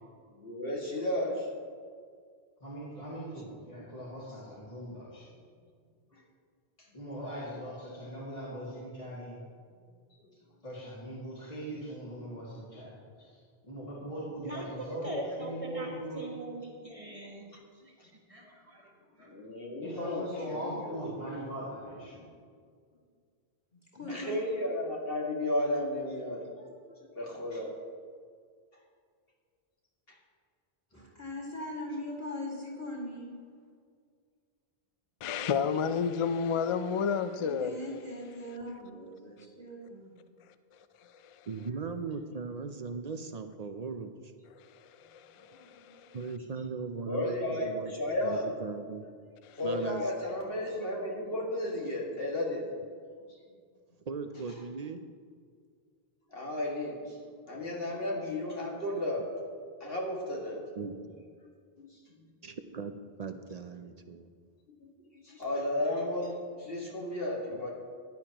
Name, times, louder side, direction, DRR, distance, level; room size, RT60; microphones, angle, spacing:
voice 1, 0.4-1.5 19.2-21.0 24.0-26.4 27.1-27.7 45.6-45.7 47.0-48.6 49.6-52.6 56.3-57.2 57.5-59.3 59.8-60.7 61.4-61.5 61.8-62.2 64.7-64.9 65.1-67.7, left 1 dB, 70° left, 2.2 m, -33 dB
voice 2, 2.6-5.2 6.9-9.4 10.6-16.2 19.8-22.3, equal, 35° left, 2.3 m, -40 dB
voice 3, 14.4-17.5 17.8-18.9 19.2-19.3, right 1 dB, 35° right, 1.4 m, -41 dB
voice 4, 23.9-24.4 30.9-33.4 37.4-40.2, left 1 dB, 15° left, 2.6 m, -40 dB
voice 5, 35.2-37.7 41.1-41.5 44.6-46.2 49.4-49.6, left 6 dB, 50° left, 0.4 m, -32 dB
voice 6, 41.5-44.3 46.1-49.0 49.6-50.1 54.1-55.0 60.8-61.1 62.4-64.3 67.5-67.7, right 4 dB, 50° right, 0.5 m, -39 dB
14.5 x 10.5 x 2.9 m
omnidirectional pair, 1.0 m